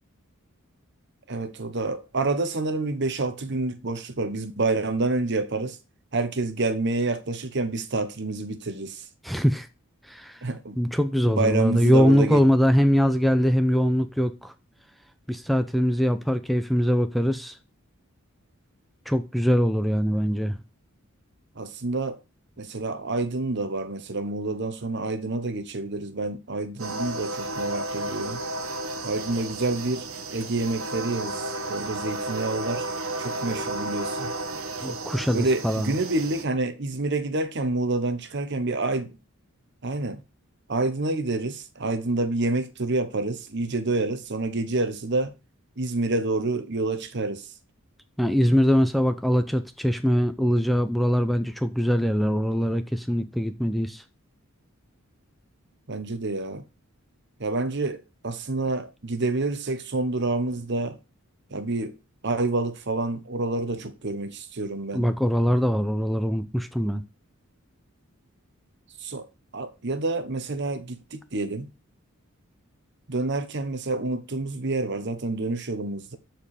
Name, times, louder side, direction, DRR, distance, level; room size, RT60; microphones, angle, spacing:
voice 1, 1.3-5.8 6.1-9.1 10.4-10.8 11.3-12.4 21.5-22.2 22.6-28.4 29.0-32.9 33.2-34.3 34.8-35.0 35.3-39.2 39.8-40.2 40.7-45.3 45.8-47.5 55.9-56.7 57.4-61.0 61.5-62.0 62.2-65.1 69.0-69.3 69.5-71.7 73.1-76.2, right 2 dB, 55° right, 1.1 m, -28 dB
voice 2, 9.2-9.7 10.0-10.4 10.8-14.5 15.3-17.6 19.1-20.6 34.8-35.9 48.2-54.0 64.9-67.0, equal, ahead, 0.5 m, -22 dB
sound 1, 26.8-36.4, right 2 dB, 70° right, 1.3 m, -33 dB
13.0 x 4.6 x 4.9 m
head